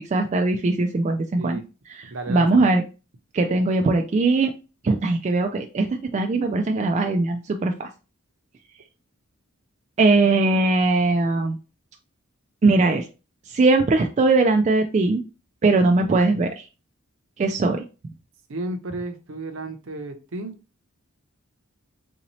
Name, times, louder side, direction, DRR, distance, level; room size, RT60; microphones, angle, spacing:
voice 1, 0.1-1.6 1.9-2.8 3.3-4.5 4.8-7.9 10.0-11.6 12.6-13.0 13.5-15.2 15.6-16.6 17.4-17.8, right 3 dB, 30° right, 4 dB, 0.3 m, -20 dB
voice 2, 2.1-2.7 18.5-20.5, right 2 dB, 65° right, 7 dB, 0.7 m, -33 dB
3.9 x 2.7 x 3.0 m, 0.31 s
head